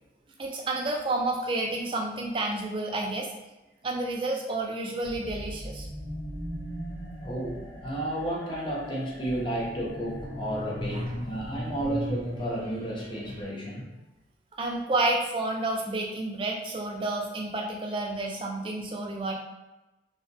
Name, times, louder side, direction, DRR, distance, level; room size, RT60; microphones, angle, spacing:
voice 1, 0.4-3.3 3.8-5.9 10.9-11.1 14.6-19.3, right 2 dB, 25° right, 0 dB, 0.3 m, -30 dB
sound 1, 5.0-13.4, equal, 65° left, 0.9 m, -38 dB
voice 2, 7.2-13.9, right 1 dB, 25° left, -5 dB, 0.6 m, -32 dB
2.6 x 2.1 x 2.5 m, 1.0 s
head